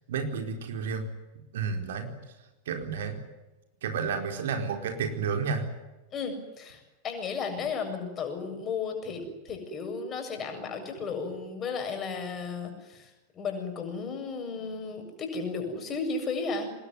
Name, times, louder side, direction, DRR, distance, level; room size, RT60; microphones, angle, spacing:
voice 1, 0.1-1.1 1.5-2.1 2.7-3.2 3.8-5.7, right 5 dB, 60° right, 5 dB, 4.5 m, -31 dB
voice 2, 6.1-16.7, left 4 dB, 25° left, 5 dB, 7.6 m, -34 dB
25.0 x 21.0 x 9.7 m, 1.0 s
figure-of-eight pair, 90°, 0 cm